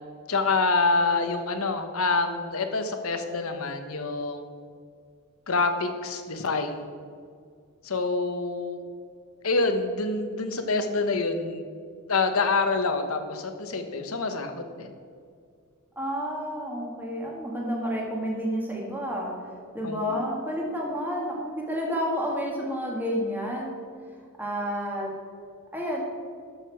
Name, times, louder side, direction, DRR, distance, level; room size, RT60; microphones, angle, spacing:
voice 1, 0.3-4.4 5.5-6.9 7.8-8.8 9.4-11.6 12.1-14.9 19.8-20.3, left 3 dB, 75° left, 7 dB, 1.0 m, -26 dB
voice 2, 15.9-23.8 24.4-25.1 25.7-26.0, equal, 10° right, -2 dB, 1.7 m, -30 dB
12.0 x 6.7 x 4.6 m, 2.2 s
head